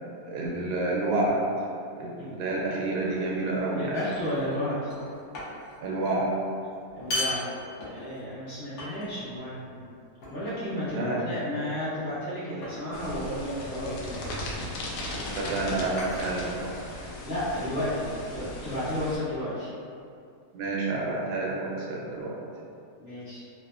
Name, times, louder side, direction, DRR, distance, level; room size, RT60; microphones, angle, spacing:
voice 1, 0.2-1.4 2.0-4.0 5.8-6.3 10.9-11.2 15.1-16.7 20.5-22.3, right 2 dB, 85° right, -4 dB, 1.1 m, -29 dB
sound 1, 3.0-3.3 4.1-4.6 4.9-5.8 6.0-6.2 6.9-8.3 8.8-9.4 10.2-10.7 11.6-11.9 12.6-13.0 14.2-14.4 15.3-17.1, left 1 dB, 60° left, 0.9 m, -37 dB
voice 2, 3.7-4.9 6.9-7.4 7.8-9.8 10.3-14.2 17.2-19.7 23.0-23.4, left 1 dB, 40° left, -14 dB, 1.3 m, -32 dB
sound 2, 12.9-19.2, left 1 dB, 85° left, 1.1 m, -37 dB
3.2 x 2.0 x 2.4 m, 2.4 s
omnidirectional pair, 1.7 m